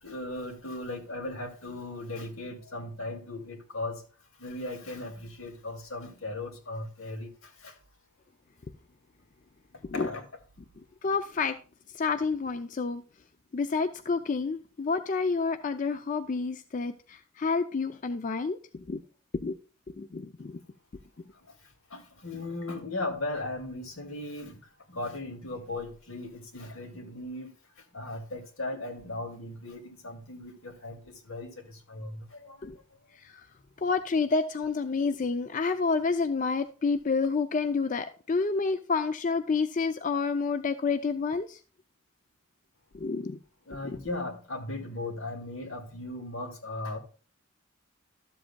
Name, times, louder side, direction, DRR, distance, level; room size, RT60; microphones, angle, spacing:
voice 1, 0.0-4.0 4.4-7.8 9.9-10.3 21.9-24.6 24.9-27.5 27.9-32.7 43.7-47.0, left 2 dB, 80° left, 2.2 m, -37 dB
voice 2, 11.0-11.6 11.9-13.0 13.5-19.0 19.3-19.6 19.9-20.6 32.6-32.8 33.2-33.5 33.8-41.6 42.9-43.4 43.8-44.0, left 4 dB, 40° left, 0.4 m, -29 dB
13.0 x 7.7 x 2.2 m
head